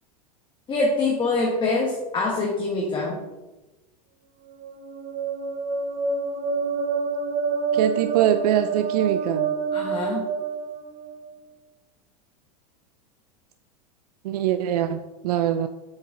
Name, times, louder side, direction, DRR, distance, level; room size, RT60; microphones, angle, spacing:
voice 1, 0.7-3.2 9.7-10.3, left 3 dB, 25° left, -2 dB, 1.2 m, -24 dB
sound 1, 4.5-11.3, right 5 dB, 45° right, 0.8 m, -27 dB
voice 2, 7.7-9.5 14.2-15.7, right 11 dB, 80° right, 9 dB, 0.4 m, -23 dB
7.2 x 4.6 x 3.7 m, 1.1 s
supercardioid pair, 120°, 20 cm